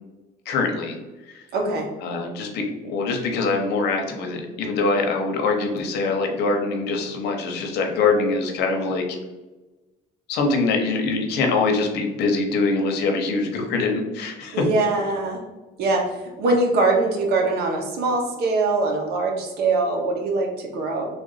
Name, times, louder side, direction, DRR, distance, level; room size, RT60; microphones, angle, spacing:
voice 1, 0.5-1.0 1.3-1.4 2.0-9.2 10.3-14.6, left 3 dB, 80° left, 3 dB, 0.8 m, -23 dB
voice 2, 1.5-1.9 14.5-15.4 15.8-21.1, right 3 dB, 70° right, 1 dB, 1.0 m, -22 dB
3.4 x 2.5 x 3.9 m, 1.1 s
cardioid pair, 110°, 17 cm